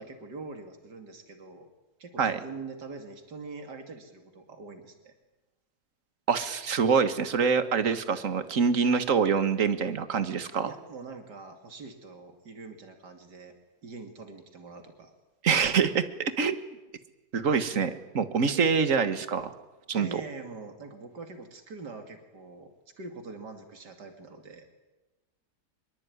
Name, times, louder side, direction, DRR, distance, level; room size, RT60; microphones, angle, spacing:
voice 1, 0.0-1.7 2.0-5.2 10.6-13.5 13.8-15.1 18.3-18.6 19.9-24.7, right 4 dB, 90° right, 6 dB, 3.1 m, -44 dB
voice 2, 6.3-10.7 15.4-16.0 16.4-16.6 17.3-19.5 19.9-20.1, right 6 dB, 50° right, 11 dB, 1.9 m, -25 dB
24.5 x 22.5 x 9.6 m, 1.1 s
omnidirectional pair, 1.7 m